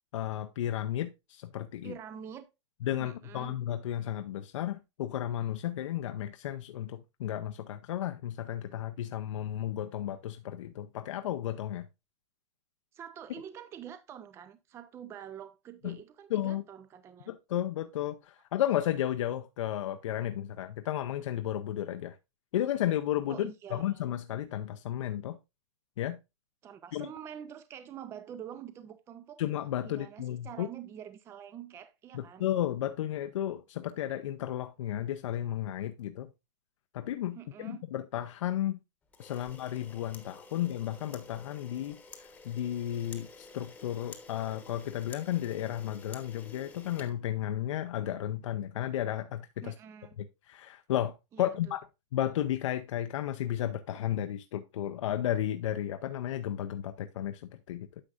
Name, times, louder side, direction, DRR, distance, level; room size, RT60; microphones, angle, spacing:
voice 1, 0.1-1.9 2.8-11.9 15.8-16.0 16.3-16.6 17.3-22.2 22.5-25.4 26.0-26.2 26.9-27.1 29.4-30.7 32.1-36.3 36.9-38.8 39.2-49.8 50.5-51.8 52.1-58.0, left 12 dB, 80° left, 0.6 m, -33 dB
voice 2, 1.8-2.5 3.0-3.6 12.9-17.3 23.3-24.0 26.6-29.4 29.8-32.5 37.4-37.8 39.3-39.5 49.6-50.2 51.3-51.8, right 9 dB, 15° right, 0.4 m, -46 dB
Camera, 39.1-47.8, left 4 dB, 10° left, 1.1 m, -51 dB
9.9 x 6.9 x 2.4 m
supercardioid pair, 150°, 16 cm